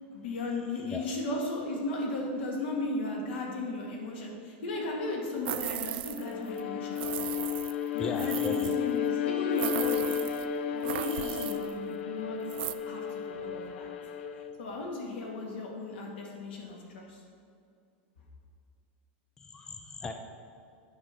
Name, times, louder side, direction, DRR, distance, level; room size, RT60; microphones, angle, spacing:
voice 1, 0.1-7.2 7.9-10.0 10.7-12.4 12.9-13.9 14.6-17.2, left 2 dB, 75° left, -1 dB, 2.1 m, -35 dB
sound 1, 5.5-6.3 6.6-6.7 7.0-8.8 9.6-10.5 10.8-11.7 12.5-12.7, right 14 dB, 65° right, 0.4 m, -37 dB
Bowed string instrument, 6.2-14.6, left 9 dB, 90° left, 0.7 m, -33 dB
voice 2, 8.0-8.7 11.1-11.5 19.4-20.1, left 4 dB, 10° left, 5 dB, 0.4 m, -38 dB
8.6 x 5.5 x 5.9 m, 2.3 s
supercardioid pair, 165°, 6 cm